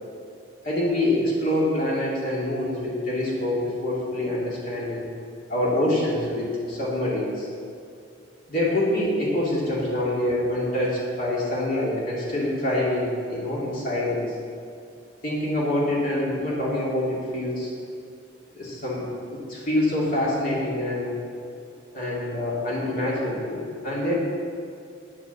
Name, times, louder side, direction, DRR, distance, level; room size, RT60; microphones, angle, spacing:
voice 1, 0.6-5.1 5.5-7.5 8.5-14.3 15.2-17.7 18.5-21.2 21.9-24.2, left 1 dB, 45° left, -6 dB, 2.6 m, -26 dB
9.4 x 6.9 x 7.2 m, 2.5 s
head